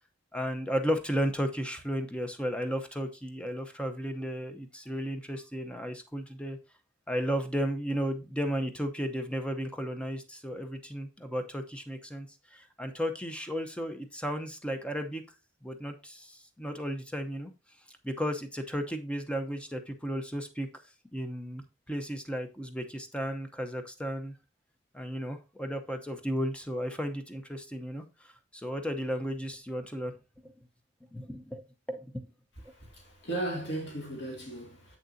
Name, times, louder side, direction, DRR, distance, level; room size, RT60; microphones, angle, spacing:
voice 1, 0.3-6.6 7.1-15.2 15.6-17.5 18.0-20.7 21.1-24.3 24.9-30.1 30.4-30.5 31.1-31.6 31.9-32.3, equal, 5° left, 0.7 m, -34 dB
voice 2, 32.7-35.0, right 2 dB, 60° left, 2.1 m, -36 dB
7.4 x 6.5 x 2.7 m
head